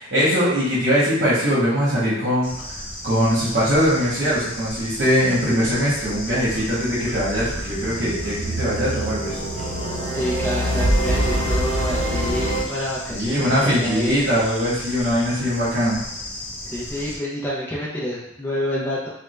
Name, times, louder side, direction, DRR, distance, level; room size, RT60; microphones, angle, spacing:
voice 1, 0.0-9.4 13.1-16.0, equal, 55° right, -9 dB, 1.2 m, -21 dB
Bird / Insect, 2.4-17.2, left 1 dB, 30° left, 0.9 m, -35 dB
sound 1, 6.0-12.6, right 1 dB, 80° right, 0.7 m, -25 dB
voice 2, 10.0-14.2 16.7-19.1, left 1 dB, 10° left, -7 dB, 0.6 m, -28 dB
3.5 x 2.4 x 3.1 m, 0.77 s
head